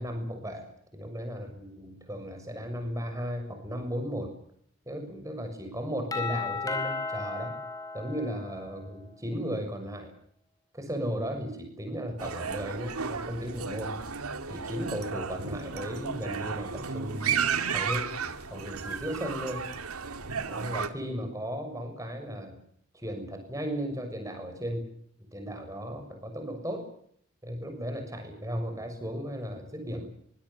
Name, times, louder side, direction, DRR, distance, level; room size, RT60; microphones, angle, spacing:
voice 1, 0.0-4.3 4.8-7.6 7.9-10.1 10.7-14.0 14.5-18.1 18.5-19.6 20.5-22.6 22.9-24.8 25.3-26.9 27.4-30.1, equal, 15° right, 5 dB, 6.6 m, -35 dB
Doorbell, 6.1-8.9, left 4 dB, 15° left, 4.4 m, -34 dB
sound 1, 12.2-20.9, right 6 dB, 90° right, 2.5 m, -33 dB
24.5 x 23.5 x 7.3 m, 0.64 s
head